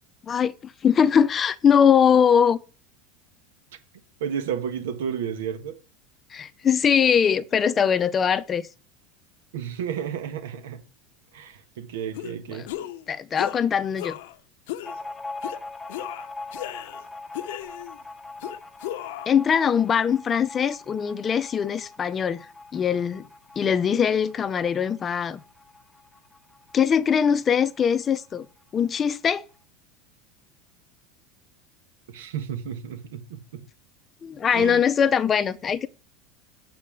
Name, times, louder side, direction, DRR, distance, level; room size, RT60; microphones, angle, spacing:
voice 1, 0.3-2.6 6.3-8.7 12.5-12.7 13.1-14.2 19.3-22.5 22.7-23.2 23.6-25.4 26.7-28.5 28.7-29.4 34.2-35.9, left 7 dB, 30° left, 0.6 m, -21 dB
voice 2, 4.2-5.8 9.5-10.8 11.3-12.7 32.1-33.4 34.5-34.8, right 8 dB, 85° right, 1.5 m, -32 dB
sound 1, 12.1-12.3 12.7-13.0 13.4-13.6 14.0-14.3 14.7-15.0 15.4-15.6 15.9-17.0 17.3-18.0 18.4-19.4, left 14 dB, 75° left, 0.7 m, -35 dB
sound 2, 14.8-28.0 28.2-28.3 28.6-29.4, left 3 dB, 5° left, 1.0 m, -42 dB
8.3 x 4.2 x 7.0 m
supercardioid pair, 105°, 0 cm